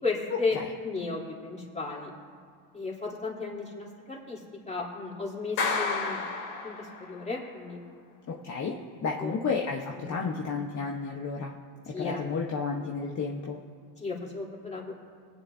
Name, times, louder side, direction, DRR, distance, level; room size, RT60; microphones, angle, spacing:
voice 1, 0.0-0.6 0.8-2.1 2.7-6.2 6.6-7.8 9.2-9.4 9.9-10.3 11.9-12.2 14.0-14.9, left 4 dB, 15° left, -4 dB, 3.5 m, -34 dB
Clapping, 5.6-7.2, left 4 dB, 80° left, 3.2 m, -31 dB
voice 2, 8.3-11.5 11.9-13.6, left 4 dB, 40° left, -1 dB, 1.3 m, -32 dB
21.5 x 9.7 x 2.8 m, 2.2 s
supercardioid pair, 85°, 47 cm